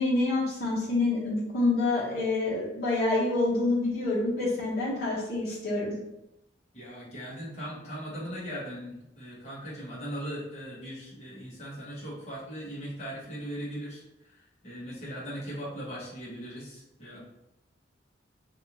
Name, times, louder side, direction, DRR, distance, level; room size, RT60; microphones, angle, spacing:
voice 1, 0.0-5.9, left 2 dB, 55° left, -8 dB, 1.2 m, -27 dB
voice 2, 6.7-17.2, equal, 40° left, -8 dB, 1.3 m, -39 dB
3.4 x 2.6 x 2.9 m, 0.88 s
head